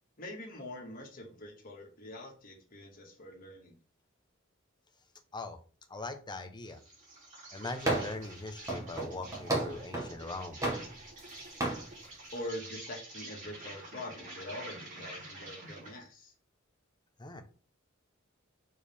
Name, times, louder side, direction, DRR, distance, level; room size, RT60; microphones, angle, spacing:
voice 1, 0.2-3.8 12.3-16.3, left 1 dB, 45° left, 0 dB, 2.0 m, -44 dB
voice 2, 5.9-6.8 7.5-10.7 17.2-17.4, left 2 dB, 20° left, 7 dB, 0.9 m, -41 dB
Insect, 6.6-16.0, right 2 dB, 40° right, 3.4 m, -48 dB
sound 1, 7.8-8.3 8.7-10.2 10.6-11.3 11.6-11.8, right 2 dB, 15° right, 1.9 m, -33 dB
6.6 x 4.7 x 3.5 m, 0.37 s
head